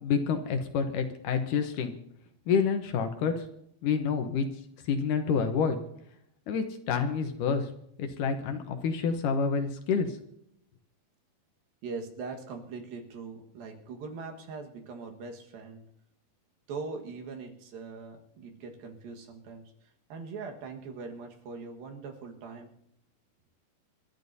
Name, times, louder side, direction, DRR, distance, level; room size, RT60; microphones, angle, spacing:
voice 1, 0.0-2.0 2.5-3.3 3.8-4.5 4.8-5.8 6.5-7.7 8.0-10.2, left 6 dB, 70° left, 7 dB, 2.3 m, -28 dB
voice 2, 11.8-15.8 16.7-22.7, right 4 dB, 75° right, 3 dB, 3.3 m, -41 dB
28.0 x 13.0 x 2.7 m, 0.74 s
omnidirectional pair, 4.3 m